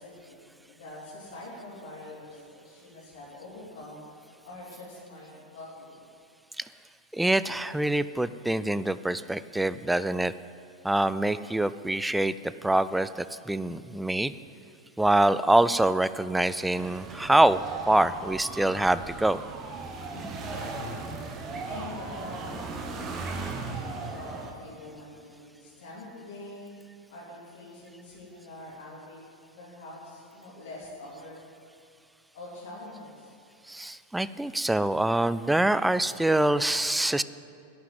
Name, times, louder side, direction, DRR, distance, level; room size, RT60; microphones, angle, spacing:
voice 1, 0.0-6.0 20.1-21.2 21.6-26.7 27.1-29.2 29.5-31.4 32.3-33.3, left 1 dB, 55° left, -5 dB, 3.3 m, -44 dB
voice 2, 7.1-10.3 10.8-14.3 15.0-17.6 17.9-19.4 33.7-37.2, right 1 dB, 5° right, 15 dB, 0.3 m, -25 dB
sound 1, 16.7-24.5, right 3 dB, 25° right, 1.3 m, -37 dB
10.5 x 7.1 x 9.2 m, 2.5 s
figure-of-eight pair, 90°, 0 cm